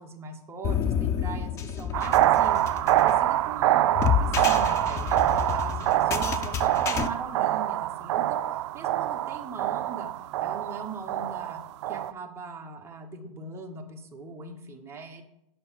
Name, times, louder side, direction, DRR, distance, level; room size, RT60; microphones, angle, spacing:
voice 1, 0.0-2.6 2.9-8.4 8.7-10.1 10.4-11.6 11.9-15.2, right 4 dB, 15° right, 2 dB, 1.0 m, -40 dB
sound 1, 0.6-7.1, left 8 dB, 15° left, 0.4 m, -29 dB
sound 2, 1.9-12.1, right 13 dB, 50° right, 0.4 m, -25 dB
7.8 x 5.6 x 5.7 m, 0.84 s
hypercardioid pair, 135°, 19 cm